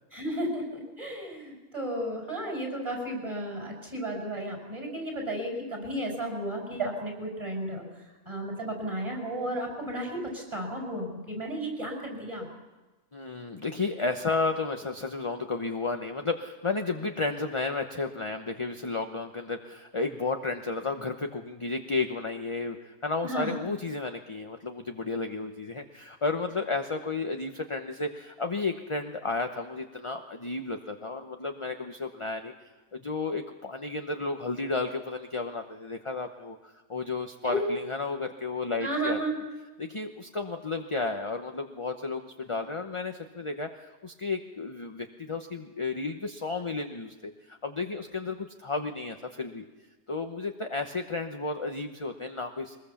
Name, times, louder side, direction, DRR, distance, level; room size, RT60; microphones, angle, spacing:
voice 1, 0.1-12.5 23.2-23.5 37.4-37.7 38.8-39.3, right 1 dB, 20° right, 2 dB, 6.3 m, -33 dB
voice 2, 13.1-32.5 32.9-39.2 39.8-49.6 50.1-52.8, left 3 dB, 25° left, 5 dB, 0.9 m, -32 dB
23.0 x 20.5 x 7.1 m, 1.2 s
omnidirectional pair, 1.5 m